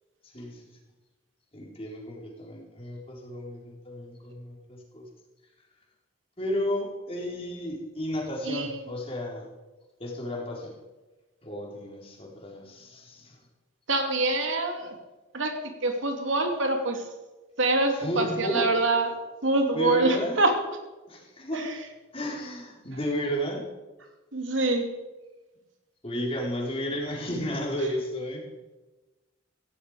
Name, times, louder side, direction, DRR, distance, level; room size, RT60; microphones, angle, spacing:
voice 1, 0.2-0.8 1.5-5.1 6.4-9.5 10.0-10.7 11.4-13.4 17.9-18.8 19.7-20.4 21.1-21.7 22.1-23.7 26.0-28.4, equal, 30° left, -1 dB, 4.0 m, -33 dB
voice 2, 8.4-8.8 13.9-15.0 15.3-15.6 15.8-17.0 17.6-19.1 19.4-20.5 21.5-21.7 24.3-24.9, right 2 dB, 75° right, 4 dB, 2.7 m, -25 dB
17.0 x 15.5 x 5.0 m, 1.1 s
head